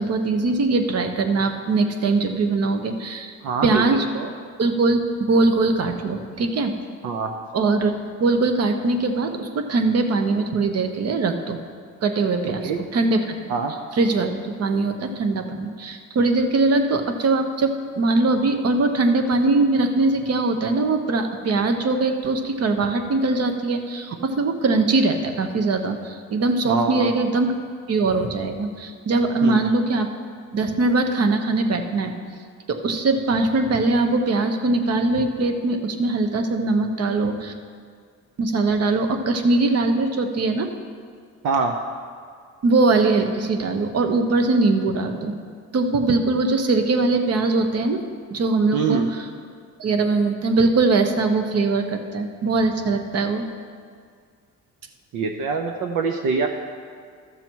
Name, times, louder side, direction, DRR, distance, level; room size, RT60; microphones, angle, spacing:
voice 1, 0.0-3.3 3.6-4.1 4.6-5.0 5.3-6.7 7.5-7.9 8.2-11.6 12.0-13.5 13.9-27.5 27.9-30.1 30.5-32.2 32.7-37.5 38.4-40.7 42.6-45.3 45.7-48.0 48.3-49.3 49.8-53.4, right 3 dB, 55° right, 6 dB, 1.1 m, -21 dB
voice 2, 3.4-3.8 4.2-4.3 7.0-7.3 12.6-12.8 13.5-13.7 26.7-27.1 29.4-29.6 41.4-41.7 48.7-49.1 55.1-56.5, right 5 dB, 75° right, 4 dB, 0.8 m, -24 dB
13.5 x 6.9 x 4.6 m, 2.1 s
cardioid pair, 90°, 30 cm